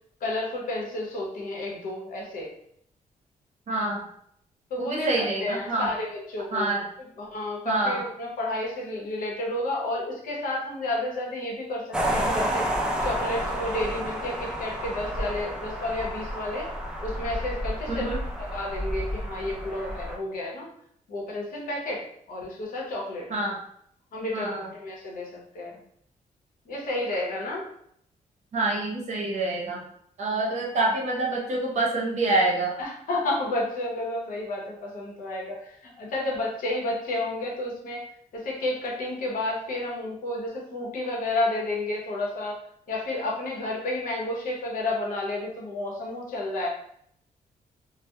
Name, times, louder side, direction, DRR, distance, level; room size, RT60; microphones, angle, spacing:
voice 1, 0.2-2.5 4.7-6.7 7.2-12.7 13.0-16.7 17.0-18.1 18.4-20.7 21.1-23.3 24.1-25.7 26.7-27.6 32.8-38.0 38.3-42.6 42.9-46.7, left 2 dB, 75° left, -1 dB, 0.8 m, -31 dB
voice 2, 3.7-4.0 4.8-5.9 6.5-6.8 7.6-8.0 17.9-18.2 23.3-23.6 24.3-24.7 28.5-29.8 30.2-32.8, right 2 dB, 55° right, -2 dB, 0.7 m, -26 dB
sound 1, 11.9-20.2, equal, 5° right, 0.3 m, -30 dB
2.2 x 2.0 x 2.8 m, 0.69 s
cardioid pair, 120°, 14 cm